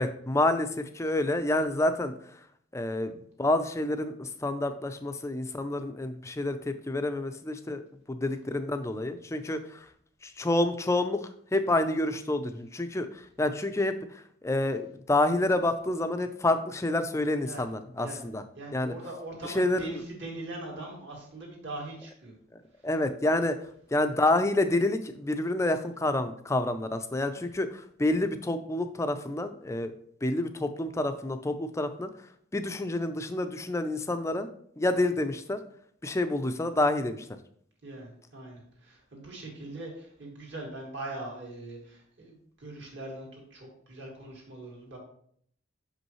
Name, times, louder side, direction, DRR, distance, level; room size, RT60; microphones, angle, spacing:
voice 1, 0.0-2.4 2.7-7.8 8.1-9.9 10.2-18.4 18.7-18.9 19.5-20.0 22.8-23.6 23.9-29.9 30.2-32.1 32.5-34.5 34.8-35.6 36.0-37.3, left 2 dB, 15° left, 8 dB, 0.4 m, -28 dB
voice 2, 18.6-22.4 22.8-22.9 27.3-27.5 37.8-45.0, right 2 dB, 60° right, -1 dB, 2.1 m, -41 dB
6.3 x 5.3 x 3.1 m, 0.63 s
head